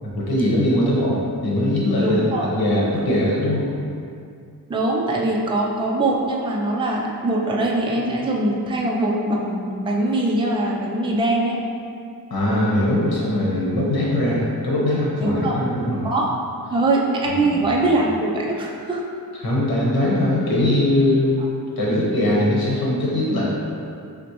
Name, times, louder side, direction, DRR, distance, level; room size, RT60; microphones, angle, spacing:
voice 1, 0.0-3.7 12.3-16.1 17.3-17.6 19.4-21.5 21.8-23.4, left 1 dB, 80° left, -5 dB, 1.0 m, -21 dB
voice 2, 2.0-2.5 4.7-11.6 15.2-15.6 16.0-16.3 16.7-19.0, right 2 dB, 15° right, -2 dB, 0.3 m, -22 dB
6.1 x 2.1 x 2.9 m, 2.4 s
wide cardioid pair, 160°, 36 cm